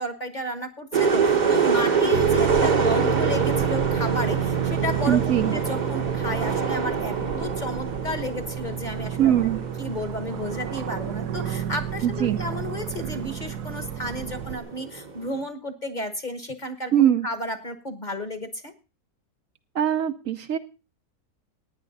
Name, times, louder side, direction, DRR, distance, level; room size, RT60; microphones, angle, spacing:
voice 1, 0.0-9.3 9.8-16.9 17.2-18.7, left 1 dB, 30° left, 9 dB, 1.2 m, -32 dB
sound 1, 0.9-15.4, right 5 dB, 35° right, 1.0 m, -26 dB
sound 2, 2.1-14.6, right 10 dB, 85° right, 1.4 m, -30 dB
voice 2, 5.1-5.6 9.2-9.6 12.0-12.4 16.9-17.3 19.7-20.6, right 10 dB, 65° right, 9 dB, 1.1 m, -21 dB
16.0 x 9.6 x 4.1 m, 0.31 s
omnidirectional pair, 1.6 m